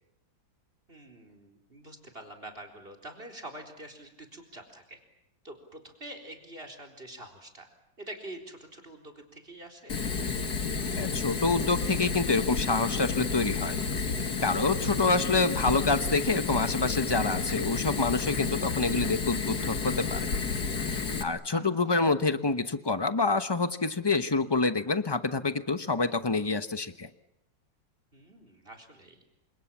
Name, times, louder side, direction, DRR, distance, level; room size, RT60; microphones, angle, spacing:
voice 1, 0.9-5.0 5.4-7.7 8.0-9.9 21.5-22.0 28.1-29.2, right 1 dB, 30° right, 7 dB, 4.2 m, -46 dB
Fire, 9.9-21.2, left 4 dB, 55° left, 2.5 m, -31 dB
voice 2, 10.9-13.8 14.4-20.3 21.2-27.1, left 3 dB, 20° left, 10 dB, 0.6 m, -27 dB
28.5 x 27.0 x 7.4 m, 0.89 s
omnidirectional pair, 2.1 m